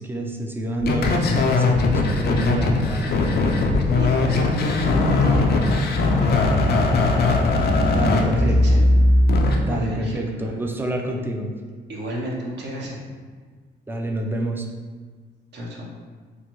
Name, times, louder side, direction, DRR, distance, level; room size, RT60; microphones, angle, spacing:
voice 1, 0.0-3.1 7.9-8.8 9.6-11.5 13.9-14.7, right 1 dB, 10° right, 2 dB, 0.4 m, -27 dB
sound 1, 0.8-9.6, left 2 dB, 55° left, 0.4 m, -19 dB
voice 2, 3.9-5.6 6.1-6.6 8.3-8.8 9.6-10.2 11.9-13.0 15.5-15.9, equal, 60° right, -3 dB, 0.8 m, -31 dB
3.2 x 2.1 x 2.9 m, 1.5 s
cardioid pair, 90°, 20 cm